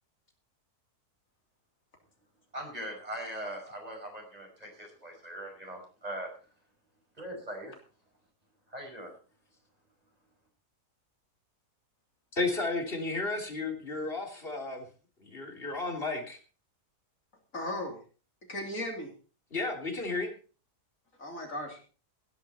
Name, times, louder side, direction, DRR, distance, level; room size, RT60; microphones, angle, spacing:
voice 1, 2.5-6.3 7.2-7.8 8.7-9.1, right 1 dB, 25° right, 2 dB, 5.7 m, -40 dB
voice 2, 12.3-14.9 15.2-16.4 19.5-20.3, left 3 dB, 35° left, 2 dB, 3.4 m, -33 dB
voice 3, 17.5-18.0 18.5-19.1 21.2-21.9, left 1 dB, 55° left, 1 dB, 3.7 m, -36 dB
17.5 x 11.0 x 4.3 m, 0.37 s
omnidirectional pair, 1.7 m